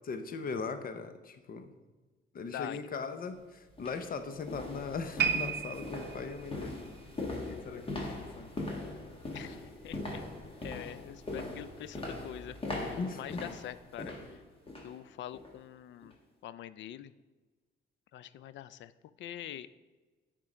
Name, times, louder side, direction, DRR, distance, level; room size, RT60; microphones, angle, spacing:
voice 1, 0.1-1.7 2.3-6.8 7.5-8.5 13.0-13.4 14.0-14.1, left 4 dB, 45° left, 9 dB, 0.8 m, -39 dB
sound 1, 3.0-3.1 3.7-15.0 15.3-15.6 16.0-16.1, left 2 dB, 30° left, 1.6 m, -41 dB
sound 2, 5.2-8.5 8.8-9.1 9.7-9.8, right 7 dB, 60° right, 0.7 m, -35 dB
voice 2, 9.3-10.2 10.6-14.4 14.8-16.1 16.4-17.1 18.1-18.9 19.2-19.7, left 11 dB, 70° left, 16 dB, 0.4 m, -44 dB
9.4 x 3.7 x 5.0 m, 1.3 s
cardioid pair, 90°, 20 cm